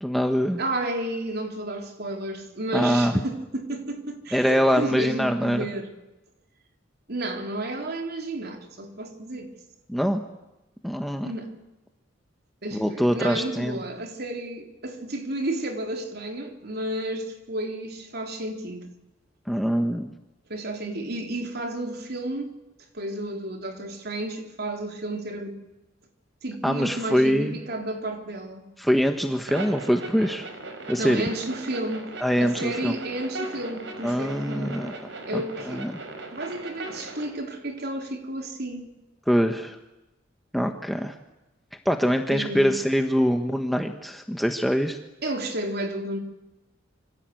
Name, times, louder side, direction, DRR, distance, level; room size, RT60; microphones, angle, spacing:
voice 1, 0.0-0.6 2.7-3.1 4.3-5.7 9.9-10.2 10.8-11.3 12.7-13.8 19.5-20.1 26.6-27.6 28.8-30.5 30.9-31.2 32.2-32.9 34.0-34.9 35.3-35.4 35.7-35.9 39.3-39.8 40.5-41.1 41.8-45.0, equal, ahead, 1.3 m, -23 dB
voice 2, 0.6-5.9 7.1-9.5 11.2-11.6 12.6-18.9 20.5-22.6 22.9-25.6 26.4-28.7 31.0-32.1 32.4-34.9 35.3-35.9 36.3-39.0 42.3-42.8 45.2-46.2, right 1 dB, 55° right, 3.6 m, -32 dB
sound 1, 29.5-37.3, right 2 dB, 75° right, 4.7 m, -38 dB
27.0 x 25.5 x 7.9 m
head